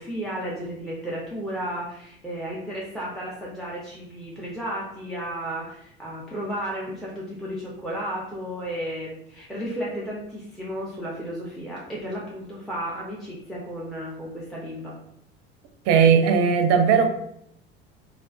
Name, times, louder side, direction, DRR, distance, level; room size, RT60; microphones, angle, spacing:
voice 1, 0.0-14.9, equal, ahead, -5 dB, 0.5 m, -33 dB
voice 2, 15.9-17.1, right 6 dB, 50° right, 6 dB, 0.5 m, -17 dB
2.4 x 2.3 x 2.3 m, 0.75 s
hypercardioid pair, 70°, 32 cm